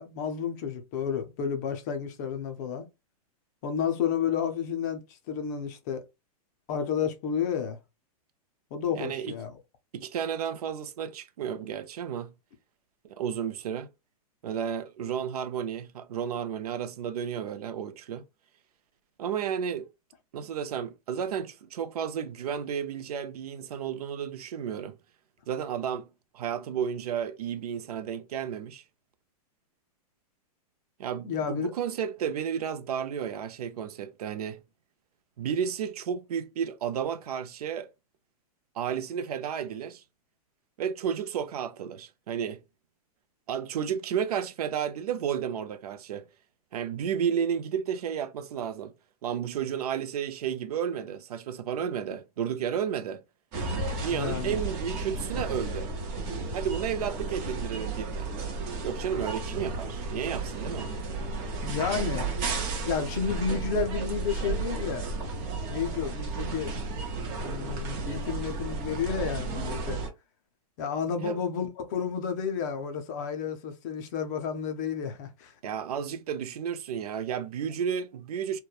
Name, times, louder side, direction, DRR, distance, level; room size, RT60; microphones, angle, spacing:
voice 1, 0.0-2.9 3.6-6.0 6.7-7.8 8.7-9.6 31.2-31.7 54.1-54.6 61.6-62.3 62.8-65.0 65.7-66.7 67.3-70.0 70.8-75.5, left 7 dB, 30° left, 0.4 m, -31 dB
voice 2, 8.9-9.4 9.9-12.3 13.0-13.9 14.4-18.2 19.2-19.9 20.3-25.0 25.5-26.1 26.3-28.8 31.0-34.6 35.4-37.9 38.8-40.0 40.8-42.6 43.5-46.3 46.7-48.9 49.2-53.2 54.0-55.9 56.5-58.3 58.8-61.0 61.9-62.1 71.2-71.4 75.6-78.6, right 8 dB, 75° right, 0.5 m, -32 dB
sound 1, 53.5-70.1, right 3 dB, 30° right, 0.7 m, -33 dB
2.9 x 2.1 x 2.3 m
hypercardioid pair, 160°, 20 cm